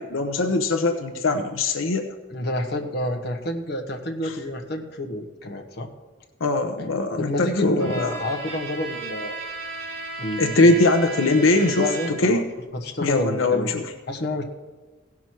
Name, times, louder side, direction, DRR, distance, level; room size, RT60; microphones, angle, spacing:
voice 1, 0.0-2.1 4.2-4.3 6.4-8.1 10.4-12.5 13.0-13.9, left 2 dB, 85° left, 6 dB, 0.8 m, -21 dB
voice 2, 2.3-5.9 6.8-6.9 7.2-9.4 10.2-10.8 11.6-12.4 12.7-13.8 14.1-14.4, left 1 dB, 55° left, 3 dB, 1.3 m, -29 dB
Bowed string instrument, 7.8-12.5, right 3 dB, 60° right, 2.7 m, -35 dB
16.5 x 6.0 x 4.6 m, 1.3 s
head